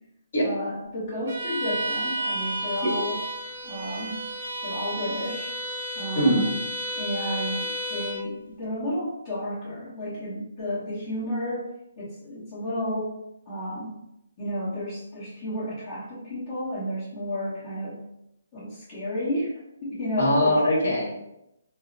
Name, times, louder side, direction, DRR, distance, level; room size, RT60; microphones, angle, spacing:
voice 1, 0.4-3.2 3.6-4.2 4.6-5.5 5.9-6.5 6.9-11.6 12.0-13.2 13.5-14.0 14.4-18.0 18.5-20.6, left 1 dB, 25° left, -10 dB, 1.2 m, -32 dB
Bowed string instrument, 1.3-8.3, right 1 dB, 65° right, 0.7 m, -32 dB
voice 2, 6.1-6.6 20.2-21.0, equal, 55° left, -2 dB, 1.3 m, -21 dB
4.6 x 2.0 x 2.5 m, 0.85 s
hypercardioid pair, 165°, 0 cm